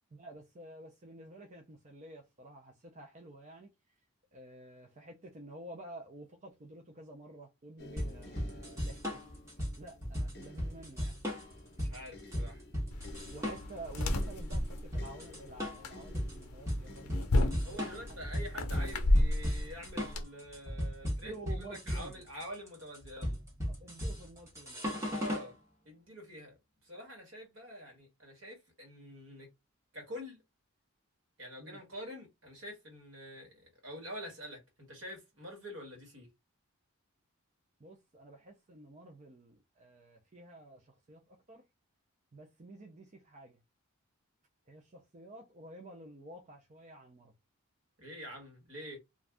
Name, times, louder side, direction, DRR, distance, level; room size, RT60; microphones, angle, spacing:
voice 1, 0.1-3.9 4.3-9.2 9.8-11.2 13.3-17.2 17.5-18.1 21.0-22.2 23.7-24.8 31.6-31.8 37.8-41.7 42.3-43.6 44.7-47.3, right 1 dB, 35° right, 0.5 m, -50 dB
sound 1, 7.8-20.9 21.7-21.9, left 2 dB, 50° left, 0.7 m, -54 dB
sound 2, 8.0-25.5, equal, 15° right, 0.9 m, -36 dB
voice 2, 11.8-12.6 17.6-23.4 25.2-25.6 25.8-29.5 29.9-30.4 31.4-36.3 48.0-49.0, equal, 65° right, 1.4 m, -46 dB
sound 3, 12.9-20.2, left 1 dB, 85° left, 0.6 m, -33 dB
2.5 x 2.3 x 3.3 m
head